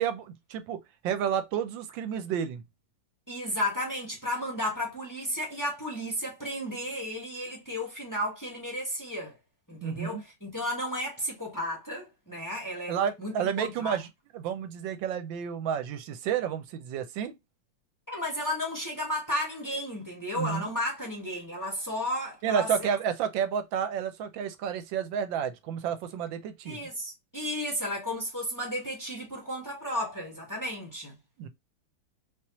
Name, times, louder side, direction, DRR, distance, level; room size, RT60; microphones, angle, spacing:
voice 1, 0.0-2.6 9.8-10.2 12.9-14.1 14.3-17.3 20.3-20.7 22.4-26.9 31.4-31.5, right 8 dB, 85° right, 1.4 m, -31 dB
voice 2, 3.3-9.4 9.7-14.0 18.1-22.9 26.6-31.1, left 1 dB, 10° left, 1.1 m, -33 dB
3.5 x 3.0 x 2.9 m
omnidirectional pair, 2.0 m